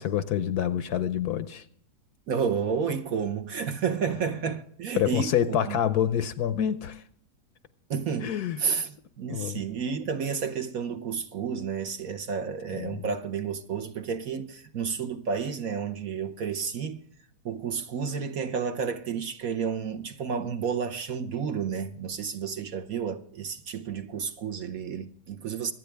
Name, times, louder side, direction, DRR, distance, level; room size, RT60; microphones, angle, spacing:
voice 1, 0.0-1.6 4.9-7.0 8.2-8.6 9.3-9.6 12.7-13.1, left 9 dB, 65° left, 1.1 m, -27 dB
voice 2, 2.3-5.8 7.9-8.3 8.6-17.0 17.4-25.7, right 6 dB, 60° right, 1.2 m, -31 dB
25.0 x 9.1 x 3.4 m
omnidirectional pair, 1.9 m